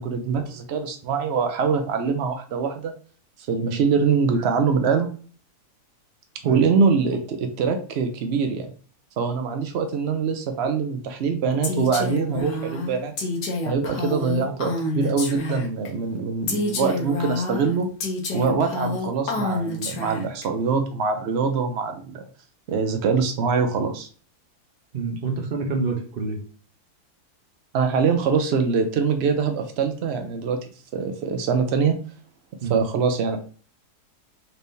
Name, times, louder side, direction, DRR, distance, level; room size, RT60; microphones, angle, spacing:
voice 1, 0.0-2.9 3.4-5.1 6.4-8.7 9.2-13.1 13.6-17.9 18.3-22.2 22.7-24.1 27.7-30.6 30.9-31.9 32.7-33.4, right 5 dB, 85° right, 6 dB, 0.5 m, -23 dB
Female speech woman speaking, 11.6-15.9 16.5-20.4, left 2 dB, 75° left, 1.4 m, -28 dB
voice 2, 24.9-26.4 32.6-32.8, right 4 dB, 45° right, 3 dB, 0.8 m, -27 dB
4.2 x 3.4 x 2.6 m, 0.42 s
omnidirectional pair, 1.7 m